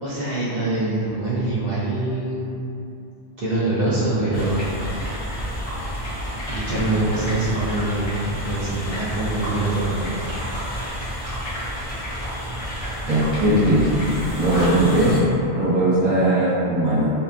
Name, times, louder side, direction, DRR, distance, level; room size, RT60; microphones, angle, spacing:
voice 1, 0.0-2.5 3.4-4.7 6.5-10.3, right 2 dB, 55° right, -9 dB, 0.5 m, -24 dB
sound 1, 4.3-15.2, equal, 35° left, 0.8 m, -30 dB
voice 2, 13.1-13.9 14.3-15.2 15.5-17.1, right 1 dB, 35° right, -17 dB, 1.3 m, -19 dB
2.7 x 2.2 x 2.4 m, 2.7 s
omnidirectional pair, 1.1 m